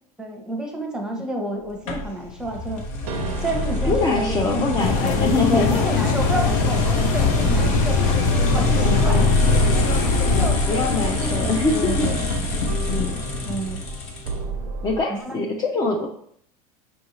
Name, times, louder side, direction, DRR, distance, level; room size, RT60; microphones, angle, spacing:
voice 1, 0.2-2.8 3.4-8.0 8.5-9.3 10.3-10.6 11.2-12.2 13.4-13.8 15.1-15.5, right 1 dB, 5° right, 1 dB, 0.8 m, -29 dB
sound 1, 1.9-14.6, left 2 dB, 75° left, 1.0 m, -24 dB
sound 2, 3.0-15.0, right 5 dB, 80° right, 0.5 m, -35 dB
voice 2, 3.8-5.8 8.8-9.3 10.0-12.1 12.9-13.2 14.8-16.1, left 3 dB, 20° left, 0 dB, 0.4 m, -24 dB
sound 3, 4.8-10.5, left 6 dB, 60° left, 0.6 m, -23 dB
5.5 x 2.6 x 2.9 m, 0.65 s
supercardioid pair, 115°, 19 cm